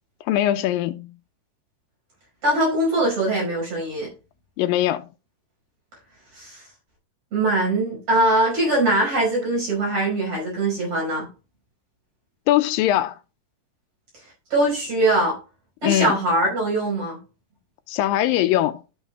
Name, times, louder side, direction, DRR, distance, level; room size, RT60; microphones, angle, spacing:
voice 1, 0.3-1.1 4.6-5.1 12.5-13.2 15.8-16.2 17.9-18.8, left 13 dB, 85° left, 2.3 m, -21 dB
voice 2, 2.4-4.1 6.3-6.6 7.3-11.3 14.5-15.4 15.8-17.2, right 1 dB, 45° right, 6.0 m, -22 dB
13.5 x 6.4 x 2.3 m
omnidirectional pair, 4.0 m